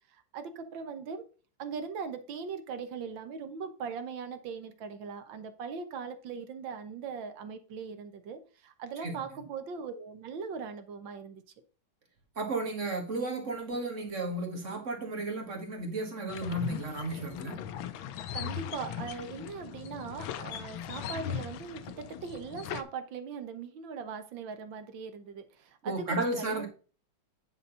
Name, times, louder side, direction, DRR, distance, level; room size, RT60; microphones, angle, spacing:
voice 1, 0.1-1.3 1.6-11.4 18.3-26.7, right 6 dB, 75° right, 1.7 m, -40 dB
voice 2, 12.4-17.6 25.8-26.7, right 2 dB, 40° right, 2.1 m, -33 dB
sound 1, 16.3-22.8, left 9 dB, 90° left, 1.5 m, -39 dB
9.9 x 4.0 x 5.4 m
omnidirectional pair, 2.1 m